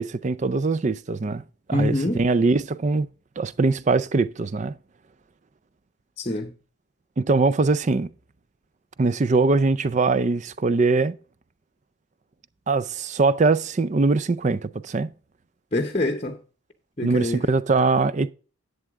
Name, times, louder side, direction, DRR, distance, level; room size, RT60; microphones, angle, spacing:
voice 1, 0.0-1.4 1.7-3.1 3.4-4.7 7.2-8.1 9.0-11.2 12.7-15.1 17.0-18.3, right 3 dB, 35° right, 0.4 m, -22 dB
voice 2, 1.7-2.2 6.2-6.5 15.7-16.4 17.0-17.4, left 1 dB, 30° left, 0.8 m, -25 dB
11.0 x 8.0 x 3.6 m
head